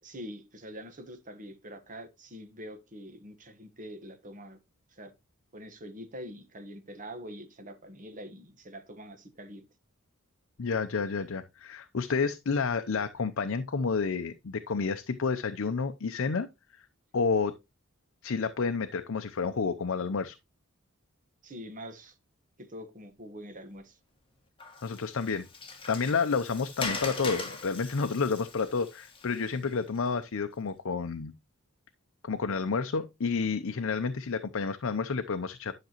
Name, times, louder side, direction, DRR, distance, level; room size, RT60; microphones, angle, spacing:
voice 1, 0.0-4.6 4.9-5.1 5.5-9.6 21.4-22.2 22.6-24.0, equal, 40° right, 1.3 m, -44 dB
voice 2, 10.6-16.5 17.1-17.5 18.2-20.4 24.8-25.5 25.9-31.3 32.2-35.7, left 5 dB, 65° left, 0.6 m, -30 dB
Water, 24.6-30.0, left 3 dB, 25° left, 1.9 m, -40 dB
10.5 x 5.9 x 2.9 m
head